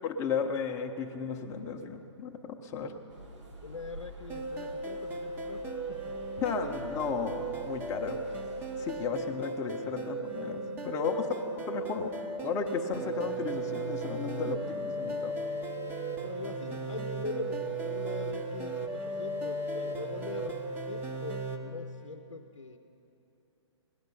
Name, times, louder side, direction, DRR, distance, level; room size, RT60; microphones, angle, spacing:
voice 1, 0.0-3.0 6.4-8.2 8.8-11.2 11.7-12.1 12.4-15.4, left 5 dB, 20° left, 3 dB, 0.8 m, -34 dB
sound 1, 3.1-9.1, right 2 dB, 75° right, 2.9 m, -48 dB
voice 2, 3.6-6.2 10.9-11.4 16.2-22.8, left 3 dB, 80° left, 5 dB, 0.7 m, -42 dB
sound 2, 4.3-21.6, right 2 dB, 10° right, 0.8 m, -36 dB
17.5 x 11.0 x 5.5 m, 2.9 s
figure-of-eight pair, 130°, 16 cm